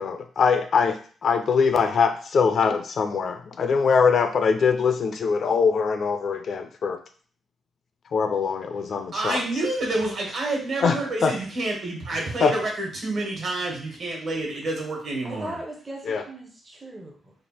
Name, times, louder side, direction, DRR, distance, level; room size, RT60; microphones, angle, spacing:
voice 1, 0.0-7.0 8.1-9.4 10.8-11.0 11.2-11.3 12.4-12.5 16.1-16.2, left 5 dB, 50° left, 8 dB, 0.4 m, -22 dB
voice 2, 9.1-15.6, right 2 dB, 50° right, 0 dB, 1.3 m, -28 dB
voice 3, 15.2-17.3, right 1 dB, 15° right, -1 dB, 0.6 m, -38 dB
3.3 x 2.4 x 4.3 m, 0.43 s
wide cardioid pair, 155°, 0 cm